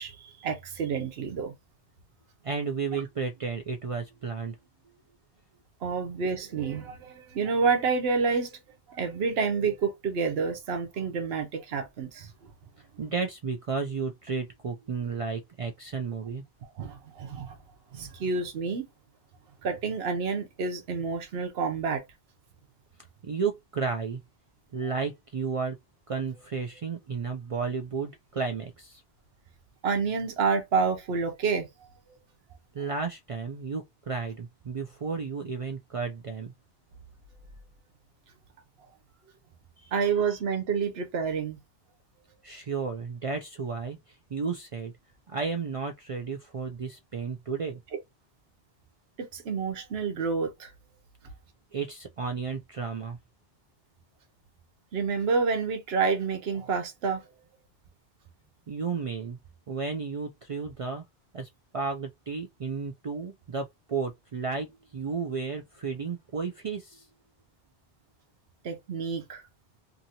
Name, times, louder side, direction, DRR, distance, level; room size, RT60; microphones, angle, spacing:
voice 1, 0.0-1.5 2.9-3.0 5.8-8.6 8.9-12.3 16.8-17.6 17.9-18.9 19.6-22.0 29.8-31.7 32.1-32.2 39.9-41.6 49.2-50.7 54.9-57.2 68.6-69.4, right 5 dB, 80° right, 1.0 m, -29 dB
voice 2, 2.4-4.6 12.8-16.4 23.2-24.2 24.7-25.8 26.1-29.0 32.7-36.5 39.8-39.9 42.4-44.9 45.3-47.8 51.7-53.2 58.7-59.4 59.7-61.0 61.3-67.1, right 5 dB, 55° right, 0.4 m, -33 dB
2.7 x 2.6 x 2.8 m
omnidirectional pair, 1.0 m